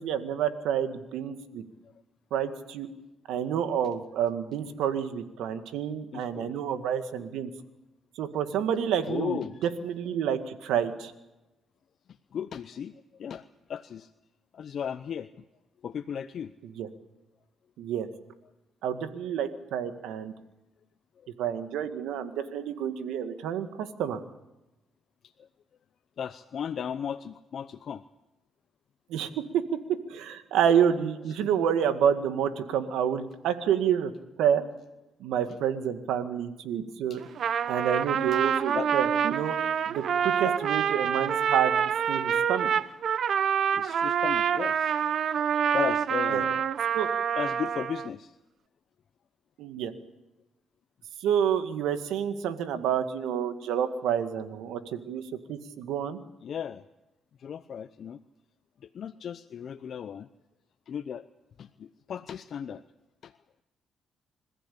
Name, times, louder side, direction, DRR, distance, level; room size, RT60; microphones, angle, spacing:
voice 1, 0.0-1.6 2.3-2.9 3.3-7.5 8.2-9.4 9.8-11.1 16.8-16.9 17.8-18.1 18.8-20.3 21.4-24.2 29.1-29.6 30.1-34.1 34.4-34.6 35.2-37.2 37.7-39.5 39.9-41.7 42.1-42.7 46.3-46.4 46.9-47.1 49.6-49.9 51.2-55.2 55.5-56.2, right 9 dB, 90° right, 9 dB, 2.0 m, -28 dB
voice 2, 6.1-6.6 9.0-9.7 12.3-14.1 14.5-15.3 15.8-16.5 21.2-21.3 25.2-25.5 26.2-28.0 31.4-31.5 35.5-35.6 37.1-37.2 38.3-38.4 38.7-38.9 40.4-40.6 43.7-45.1 45.7-46.6 47.4-48.4 56.4-56.9 57.4-58.2 58.8-60.3 60.9-61.3 61.6-62.8 63.2-63.4, left 8 dB, 60° left, 11 dB, 0.8 m, -36 dB
Trumpet, 37.2-48.1, right 8 dB, 65° right, 1.0 m, -27 dB
27.0 x 15.0 x 8.6 m, 0.98 s
cardioid pair, 90°, 0 cm